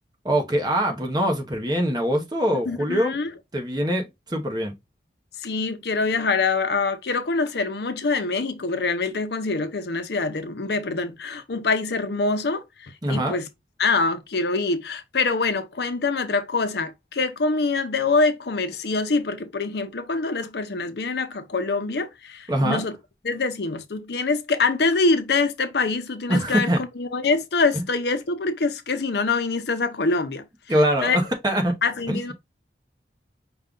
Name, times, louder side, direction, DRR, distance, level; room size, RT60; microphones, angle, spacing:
voice 1, 0.2-3.2 3.5-4.7 13.0-13.4 22.5-22.8 26.3-26.8 27.7-27.8 30.7-31.7 32.1-32.2, equal, 20° right, 0.9 m, -23 dB
voice 2, 2.7-3.3 5.4-13.5 13.8-22.9 23.2-30.4 31.0-31.2 31.8-32.3, left 3 dB, 65° left, 0.6 m, -25 dB
5.4 x 2.3 x 3.7 m
head